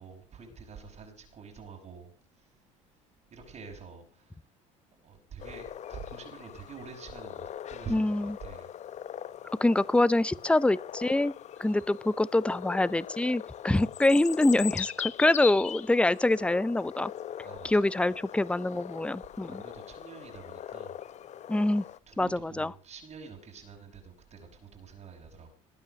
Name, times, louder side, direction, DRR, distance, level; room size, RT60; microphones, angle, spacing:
voice 1, 0.0-2.1 2.4-2.5 3.3-4.4 4.9-8.7 17.4-17.8 19.4-21.0 22.1-25.5, right 5 dB, 40° right, 5.9 m, -47 dB
sound 1, 5.4-22.0, left 10 dB, 45° left, 0.9 m, -41 dB
voice 2, 7.9-8.3 9.6-11.3 11.6-17.1 17.6-19.6 21.5-21.8 22.2-22.7, left 2 dB, 5° left, 0.7 m, -25 dB
20.0 x 9.0 x 6.5 m
hypercardioid pair, 75°, 17 cm